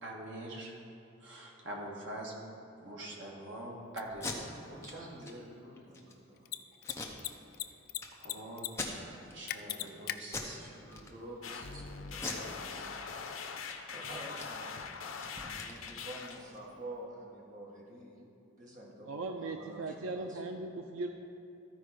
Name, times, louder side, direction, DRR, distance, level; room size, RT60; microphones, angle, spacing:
voice 1, 0.0-0.8 1.2-2.3 2.8-4.6 6.9-7.1 8.1-10.8, right 1 dB, 60° right, -2 dB, 1.6 m, -44 dB
Mechanisms, 4.0-4.1 6.4-6.6 6.8-6.9 7.2-8.0 8.2-8.7 8.9-9.0 9.5-10.2, left 13 dB, 50° left, 0.3 m, -36 dB
Packing tape duct tape, 4.1-4.4 4.8-4.9 5.2-5.3 5.8-6.1 6.8-7.6 8.0-8.1 8.7-9.3 9.7-9.9 10.3-10.6 10.9-11.5 12.1-13.3 13.6-13.7 14.0-16.6, left 3 dB, 15° left, 0.8 m, -42 dB
voice 2, 4.6-6.6 10.6-13.0 13.3-13.7 13.9-14.8 15.5-18.2 18.6-20.4, right 1 dB, 40° right, -3 dB, 1.6 m, -48 dB
sound 1, 11.4-16.4, left 5 dB, 90° left, 0.7 m, -42 dB
voice 3, 19.1-21.1, right 3 dB, 90° right, 5 dB, 0.5 m, -38 dB
13.5 x 4.6 x 5.0 m, 3.0 s
head